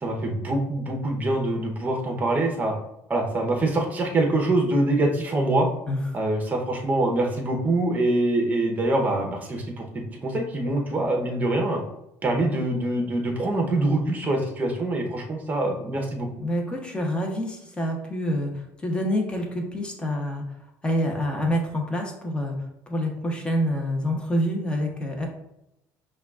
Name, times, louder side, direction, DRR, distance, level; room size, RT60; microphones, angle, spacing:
voice 1, 0.0-2.7 3.1-5.7 6.1-11.8 12.2-16.3, right 2 dB, 20° right, 1 dB, 0.8 m, -24 dB
voice 2, 16.4-20.4 20.8-25.3, equal, 15° left, 1 dB, 0.9 m, -27 dB
5.5 x 2.4 x 2.4 m, 0.83 s
cardioid pair, 115°, 8 cm